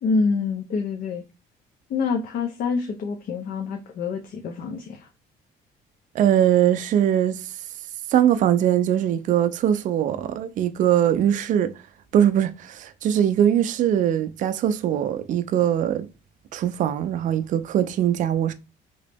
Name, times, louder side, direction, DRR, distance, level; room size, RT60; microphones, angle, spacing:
voice 1, 0.0-1.2 1.9-5.1, left 4 dB, 60° left, 0.6 m, -26 dB
voice 2, 6.1-7.6 8.1-11.7 12.1-16.1 16.5-18.5, right 10 dB, 50° right, 0.4 m, -21 dB
3.0 x 2.9 x 3.3 m
cardioid pair, 110°, 17 cm